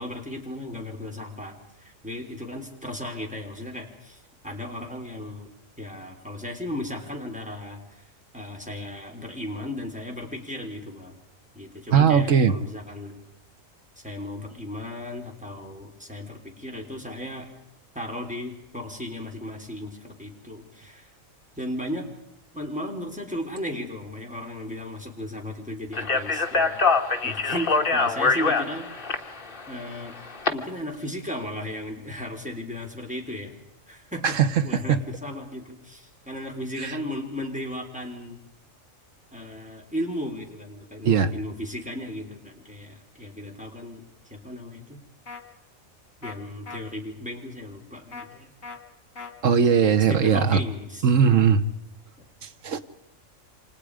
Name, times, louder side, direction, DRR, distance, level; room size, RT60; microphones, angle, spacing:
voice 1, 0.0-5.5 5.8-8.1 8.3-11.2 11.5-13.2 14.0-17.5 17.9-21.1 21.6-22.1 22.5-26.8 27.2-29.2 29.7-30.2 30.5-33.5 33.9-34.4 34.6-38.4 39.3-45.0 46.2-48.5 50.1-51.4 52.2-52.3, left 1 dB, 5° right, 1 dB, 4.4 m, -35 dB
voice 2, 11.9-12.5 34.2-34.5 34.7-35.0 36.8-37.0 41.0-41.3 49.4-50.6 51.0-51.6 52.4-52.8, right 7 dB, 70° right, 9 dB, 1.6 m, -19 dB
Speech, 25.9-30.5, left 4 dB, 40° left, 1.8 m, -24 dB
sound 1, 45.3-45.4 46.2-46.4 46.7-46.8 48.1-48.3 48.6-48.8 49.2-49.3, left 4 dB, 70° left, 2.6 m, -39 dB
29.0 x 26.0 x 5.1 m, 0.80 s
omnidirectional pair, 1.4 m